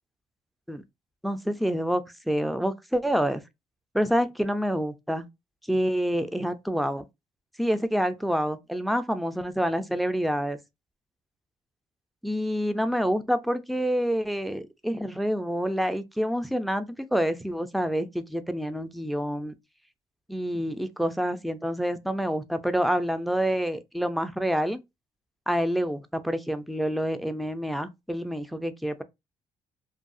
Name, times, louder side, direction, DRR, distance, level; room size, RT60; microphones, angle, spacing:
voice 1, 1.2-3.4 3.9-5.3 5.7-7.1 7.6-10.6 12.2-19.5 20.3-24.8 25.5-29.0, equal, ahead, 0.3 m, -27 dB
2.7 x 2.3 x 2.4 m
cardioid pair, 130°, 10 cm